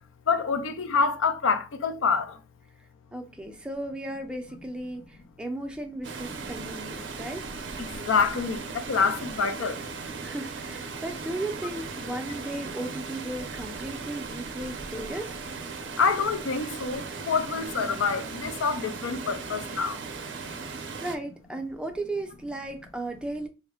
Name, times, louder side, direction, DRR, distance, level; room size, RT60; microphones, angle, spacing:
voice 1, 0.3-2.3 7.9-9.8 16.0-20.0, left 5 dB, 80° left, 0.5 m, -26 dB
voice 2, 3.1-7.5 10.2-15.3 21.0-23.5, right 1 dB, 5° right, 0.4 m, -35 dB
Water, 6.0-21.2, right 4 dB, 60° right, 0.5 m, -37 dB
3.4 x 2.1 x 3.5 m
head